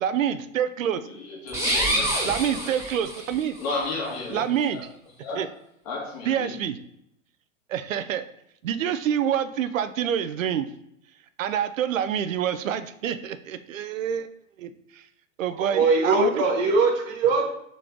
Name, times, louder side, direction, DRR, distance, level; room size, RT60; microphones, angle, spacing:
voice 1, 0.0-1.0 2.2-3.6 4.3-4.8 5.4-5.5 6.3-6.8 7.7-8.2 8.6-10.7 11.4-14.3 14.6-15.0 15.4-16.4, right 9 dB, 75° right, 12 dB, 0.5 m, -27 dB
voice 2, 1.0-2.1 2.6-2.7 3.6-4.4 4.7-4.8 5.2-5.4 5.9-6.5, left 3 dB, 45° left, -2 dB, 1.7 m, -33 dB
sound 1, 1.5-3.5, right 1 dB, 5° right, 1.3 m, -26 dB
voice 3, 15.6-17.5, right 3 dB, 45° right, 0 dB, 0.9 m, -21 dB
3.9 x 3.1 x 3.6 m, 0.77 s
figure-of-eight pair, 95°, 40 cm